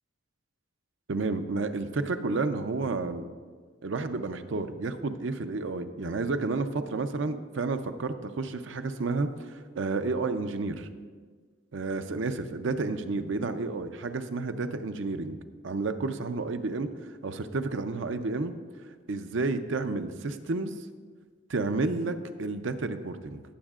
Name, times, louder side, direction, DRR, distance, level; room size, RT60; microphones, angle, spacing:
voice 1, 1.1-3.2 3.8-9.5 9.7-10.9 11.7-15.4 15.6-16.9 17.2-18.5 19.1-20.8 21.5-23.4, right 3 dB, 70° right, 9 dB, 0.5 m, -31 dB
18.5 x 7.2 x 2.4 m, 1.5 s
head